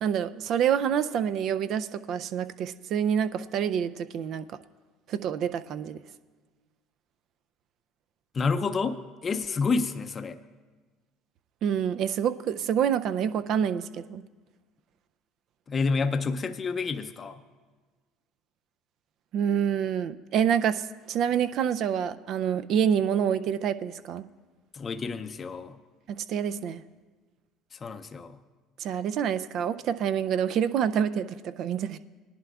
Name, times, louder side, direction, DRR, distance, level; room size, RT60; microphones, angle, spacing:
voice 1, 0.0-4.6 5.1-6.0 11.6-14.2 19.3-24.2 26.1-26.8 28.8-32.0, right 8 dB, 60° right, 12 dB, 0.4 m, -27 dB
voice 2, 8.3-10.4 15.7-17.4 24.7-25.8 27.7-28.4, left 4 dB, 35° left, 8 dB, 0.5 m, -29 dB
18.5 x 11.0 x 2.4 m, 1.4 s
supercardioid pair, 85°, 0 cm